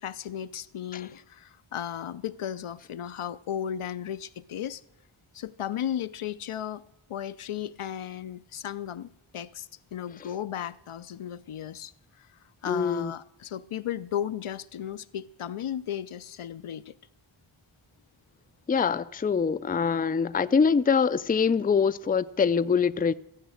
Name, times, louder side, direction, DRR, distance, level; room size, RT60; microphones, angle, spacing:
voice 1, 0.0-4.8 5.3-6.8 7.1-11.9 12.2-12.3 12.6-16.9, left 10 dB, 80° left, 0.6 m, -35 dB
voice 2, 12.7-13.1 18.7-23.1, left 6 dB, 20° left, 0.4 m, -24 dB
15.5 x 8.2 x 6.3 m
wide cardioid pair, 55°, 50 cm